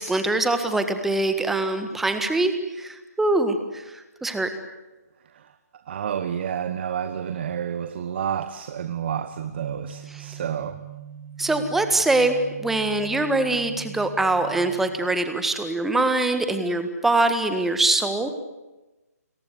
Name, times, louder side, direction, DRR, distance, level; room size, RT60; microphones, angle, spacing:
voice 1, 0.0-4.5 10.1-10.2 11.4-18.3, right 2 dB, 5° right, 8 dB, 1.7 m, -23 dB
voice 2, 5.9-10.8, right 8 dB, 40° right, 11 dB, 1.3 m, -29 dB
sound 1, 9.3-14.9, right 8 dB, 75° right, 6.0 m, -41 dB
30.0 x 22.5 x 8.3 m, 1.1 s
figure-of-eight pair, 150°, 9 cm